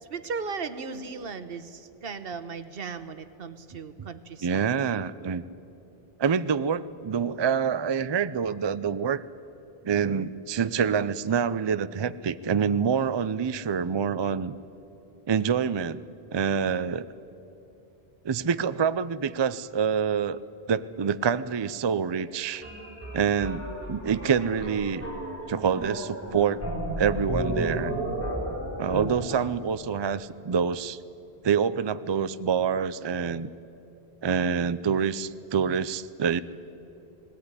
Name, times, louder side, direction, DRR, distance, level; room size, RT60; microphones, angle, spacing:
voice 1, 0.1-4.7 29.3-29.5, right 5 dB, 65° right, 11 dB, 1.2 m, -37 dB
voice 2, 4.4-5.4 6.2-9.2 9.8-14.5 15.3-16.0 16.3-17.1 18.2-20.4 20.7-22.6 23.1-25.0 25.5-26.6 27.0-27.9 28.8-31.0 31.4-33.5 34.2-36.4, right 7 dB, 45° right, 14 dB, 0.3 m, -26 dB
sound 1, 22.6-29.0, right 1 dB, 15° left, 5.8 m, -33 dB
19.0 x 17.0 x 9.8 m, 2.8 s
omnidirectional pair, 1.1 m